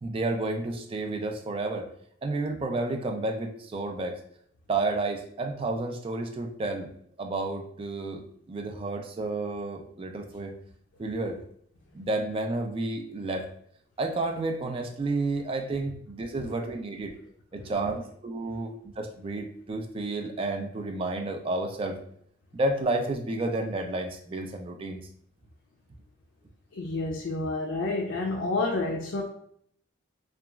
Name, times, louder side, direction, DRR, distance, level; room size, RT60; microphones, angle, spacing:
voice 1, 0.0-1.9 2.2-4.2 4.7-6.9 7.2-10.5 11.0-11.4 11.9-13.5 14.0-17.1 17.5-22.0 22.5-25.1, right 2 dB, 30° right, 4 dB, 0.3 m, -31 dB
voice 2, 26.7-29.2, left 2 dB, 85° left, 0 dB, 0.4 m, -29 dB
2.9 x 2.3 x 2.3 m, 0.66 s
head